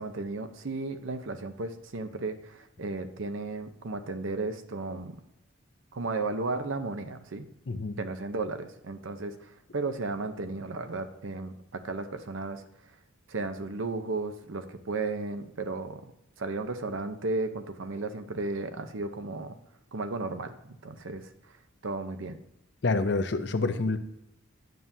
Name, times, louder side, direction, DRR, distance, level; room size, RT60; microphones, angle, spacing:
voice 1, 0.0-5.2 5.9-7.5 8.0-12.6 13.3-16.0 16.4-19.5 19.9-21.3 21.8-22.4, right 3 dB, 75° right, 8 dB, 0.7 m, -34 dB
voice 2, 7.7-8.0 22.8-24.0, left 3 dB, 55° left, 9 dB, 0.6 m, -27 dB
9.2 x 7.3 x 2.7 m, 0.84 s
head